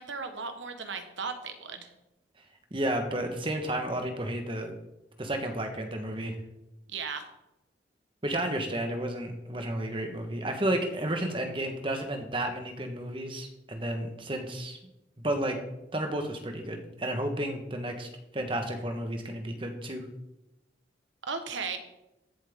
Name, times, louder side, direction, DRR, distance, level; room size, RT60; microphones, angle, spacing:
voice 1, 0.0-1.9 6.9-7.2 21.3-21.8, right 5 dB, 85° right, 7 dB, 1.3 m, -36 dB
voice 2, 2.7-4.7 5.2-6.4 8.2-14.8 15.2-15.6 15.9-18.1 18.3-20.0, right 1 dB, 30° right, 5 dB, 1.3 m, -32 dB
15.0 x 7.6 x 3.7 m, 0.93 s
head